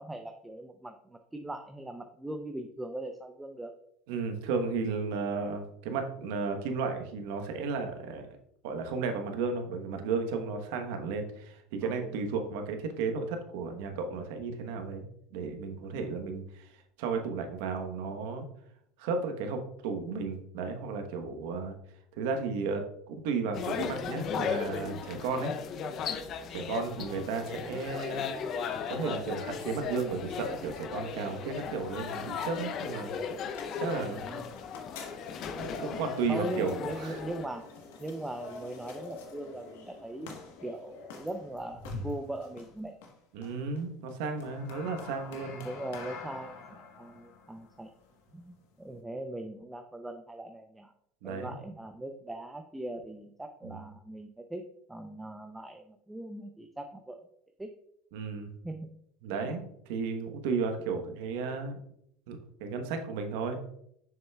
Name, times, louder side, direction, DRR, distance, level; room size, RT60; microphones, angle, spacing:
voice 1, 0.0-3.7 11.8-12.1 26.8-27.1 34.1-34.6 36.3-37.7 38.0-43.0 45.5-47.9 48.3-50.9 51.2-57.2 57.6-57.8 58.6-59.0 59.4-59.5, right 1 dB, 10° right, 6 dB, 0.5 m, -40 dB
voice 2, 4.1-8.3 8.6-15.0 15.3-16.7 17.0-18.4 19.0-21.7 22.2-25.5 26.5-28.3 28.9-33.1 33.8-34.2 35.6-37.2 43.3-45.6 51.2-51.6 53.6-53.8 58.1-58.5 59.2-61.8 62.3-63.6, right 4 dB, 75° right, 6 dB, 1.0 m, -34 dB
sound 1, 23.5-37.5, left 6 dB, 45° left, 0.6 m, -36 dB
sound 2, 30.0-49.0, left 4 dB, 85° left, 1.1 m, -47 dB
7.1 x 6.3 x 2.3 m, 0.73 s
supercardioid pair, 105°, 0 cm